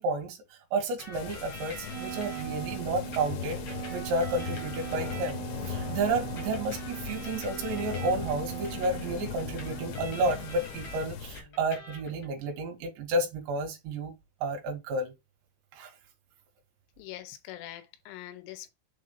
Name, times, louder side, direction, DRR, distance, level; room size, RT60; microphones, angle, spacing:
voice 1, 0.0-14.1 14.4-15.1 15.7-15.9, right 2 dB, 70° right, 3.3 m, -31 dB
sound 1, 1.0-2.4 3.1-5.7 6.4-11.0 11.3-12.3, left 1 dB, 55° left, 1.5 m, -46 dB
sound 2, 1.1-11.4, left 8 dB, 75° left, 2.6 m, -39 dB
Wind instrument woodwind instrument, 1.9-10.0, right 28 dB, 85° right, 3.1 m, -40 dB
voice 2, 17.0-18.7, left 13 dB, 90° left, 3.2 m, -43 dB
7.3 x 2.6 x 5.3 m
omnidirectional pair, 5.7 m